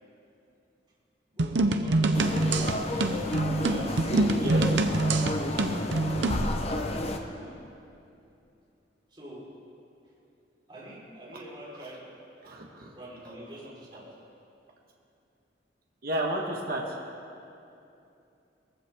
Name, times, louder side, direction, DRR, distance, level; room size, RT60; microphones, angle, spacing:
voice 1, 1.3-2.1 2.8-3.2 3.5-4.8 6.0-6.2 7.2-7.6 9.1-9.5 10.7-12.0 12.9-14.1, equal, 30° right, -8 dB, 4.6 m, -45 dB
sound 1, 1.4-6.5, right 2 dB, 85° right, 0.8 m, -25 dB
sound 2, 2.1-7.2, left 1 dB, 35° left, 1.0 m, -31 dB
voice 2, 12.4-12.9 16.0-16.8, right 1 dB, 55° right, -1 dB, 1.6 m, -31 dB
20.5 x 15.5 x 3.7 m, 2.7 s
head